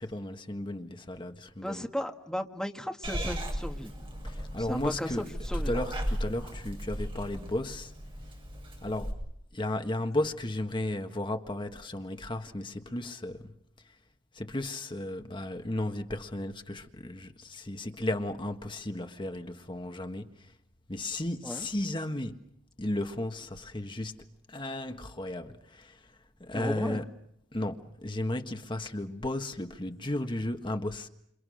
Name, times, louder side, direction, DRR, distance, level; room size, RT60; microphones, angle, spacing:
voice 1, 0.1-1.8 4.2-5.3 5.5-7.9 8.8-9.1 9.5-13.5 14.3-20.3 20.9-22.5 22.8-26.0 26.4-27.1 27.5-31.1, left 1 dB, 25° left, 1.6 m, -34 dB
voice 2, 1.6-3.9 4.6-5.7 21.4-21.7 26.5-27.0, equal, 5° left, 1.6 m, -35 dB
Purr / Meow, 3.0-9.1, equal, 25° right, 7.4 m, -36 dB
29.0 x 28.5 x 6.5 m
head